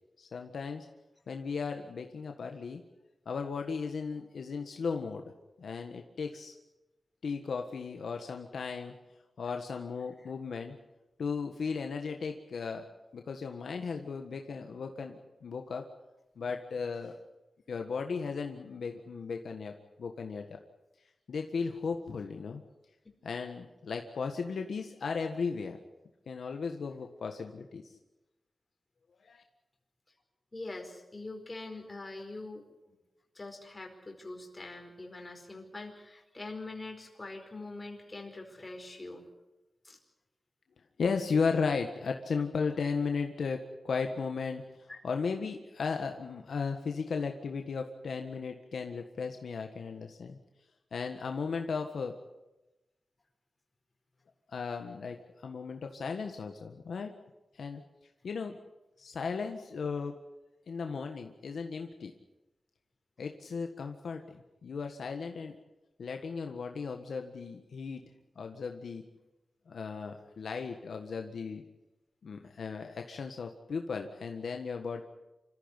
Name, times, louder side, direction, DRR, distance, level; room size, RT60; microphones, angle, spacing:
voice 1, 0.2-0.8 1.3-2.8 3.2-5.2 5.6-6.5 7.2-8.9 9.4-10.8 11.2-12.8 13.1-15.9 16.4-17.2 17.7-20.5 21.3-22.6 23.2-25.8 26.3-27.9 29.2-29.4 41.0-50.4 50.9-52.2 54.5-55.2 55.4-57.1 57.5-57.8 58.2-58.6 59.0-60.2 60.7-62.1 63.2-65.5 66.0-68.0 68.3-69.0 69.7-71.6 72.2-75.0, left 5 dB, 90° left, 4 dB, 1.6 m, -36 dB
voice 2, 30.5-32.7 33.3-39.2 39.8-40.0 44.9-45.0, left 2 dB, 30° left, 3 dB, 4.7 m, -43 dB
26.5 x 14.5 x 9.9 m, 1.0 s
wide cardioid pair, 100°, 0 cm